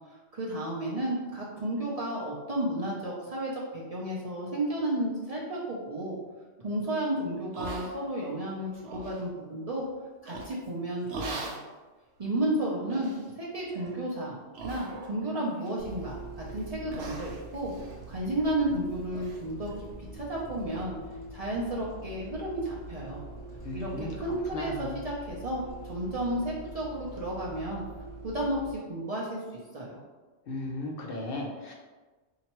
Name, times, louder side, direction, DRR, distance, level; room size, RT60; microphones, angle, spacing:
voice 1, 0.1-6.2 6.6-9.8 10.2-11.5 12.2-14.4 14.6-17.7 18.1-19.7 20.0-20.9 21.3-23.2 23.7-27.8 28.2-29.4 29.7-30.0, right 1 dB, 40° right, -5 dB, 0.6 m, -32 dB
sound 1, 7.5-8.3 8.7-9.2 10.3-10.7 11.1-11.7 12.2-12.3 12.9-13.3 13.7-14.0 14.5-15.2 15.6-16.1 16.5-16.6 16.9-18.8 19.1-19.4 19.7-19.8 20.2-20.3 20.7-20.8, right 3 dB, 70° right, 0.9 m, -41 dB
Bus, 15.8-28.7, right 1 dB, 40° left, 1.0 m, -44 dB
voice 2, 23.6-24.1 24.5-25.0 30.5-31.7, left 2 dB, 60° left, 0 dB, 0.8 m, -36 dB
4.3 x 2.9 x 2.9 m, 1.3 s
omnidirectional pair, 1.2 m